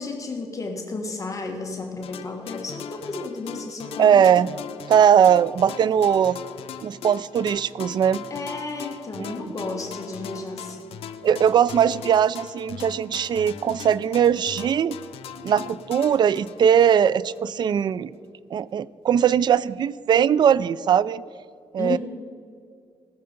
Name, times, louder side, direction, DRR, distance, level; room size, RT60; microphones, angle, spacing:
voice 1, 0.0-4.4 8.3-11.0 11.8-11.9 21.8-22.0, left 3 dB, 35° left, 2 dB, 1.3 m, -33 dB
sound 1, 2.0-17.4, left 8 dB, 85° left, 0.6 m, -40 dB
voice 2, 4.0-4.5 4.9-6.4 6.8-8.2 9.2-9.4 11.2-15.0 15.4-18.1 18.5-21.2 21.7-22.0, right 8 dB, 50° right, 19 dB, 0.3 m, -20 dB
18.5 x 6.8 x 5.2 m, 2.3 s
cardioid pair, 120°, 10 cm